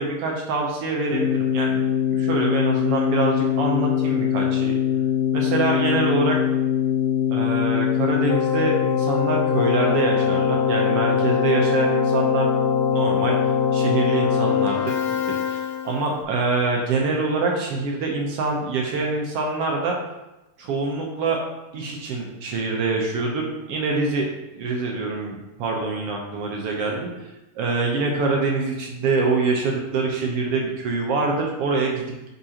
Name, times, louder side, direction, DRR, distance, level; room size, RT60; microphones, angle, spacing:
voice 1, 0.0-1.8 2.1-4.8 5.3-6.4 7.3-12.5 12.9-13.4 13.7-19.9 20.6-21.4 21.7-24.3 24.5-27.1 27.5-32.3, right 3 dB, 65° right, 0 dB, 1.6 m, -25 dB
Keyboard (musical), 1.1-16.2, left 8 dB, 90° left, 2.3 m, -22 dB
8.6 x 5.2 x 2.9 m, 0.99 s
omnidirectional pair, 3.5 m